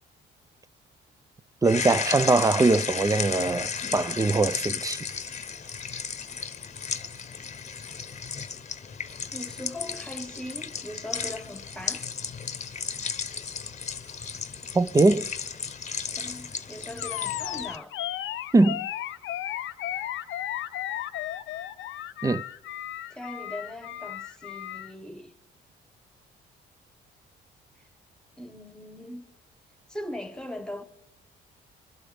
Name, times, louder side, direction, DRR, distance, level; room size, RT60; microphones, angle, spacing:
sound 1, 1.6-17.8, left 6 dB, 35° left, 0.9 m, -34 dB
voice 1, 1.6-5.0 14.7-15.3 18.5-18.9 22.2-22.4, right 3 dB, 15° right, 0.4 m, -22 dB
voice 2, 9.3-12.1 16.2-17.9 23.1-25.3 28.4-29.2 29.9-30.8, left 1 dB, 5° left, 1.4 m, -39 dB
Animal, 17.0-24.9, left 12 dB, 80° left, 0.6 m, -34 dB
23.5 x 11.5 x 3.5 m
cardioid pair, 90°, 20 cm